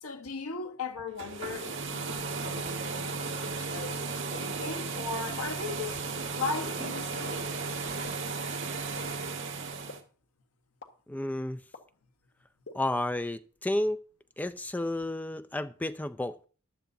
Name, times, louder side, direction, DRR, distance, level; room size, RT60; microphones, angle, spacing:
voice 1, 0.0-4.0 4.3-7.5, left 4 dB, 80° left, 1.2 m, -38 dB
sound 1, 1.1-10.0, right 4 dB, 60° right, 1.9 m, -35 dB
sound 2, 8.0-8.1 9.0-9.1 9.9-10.0 10.8-10.9 11.7-11.8 12.6-12.7, left 3 dB, 55° left, 1.6 m, -44 dB
voice 2, 11.1-11.6 12.7-14.0 14.4-16.5, left 1 dB, 5° left, 0.4 m, -31 dB
14.5 x 11.5 x 2.7 m
head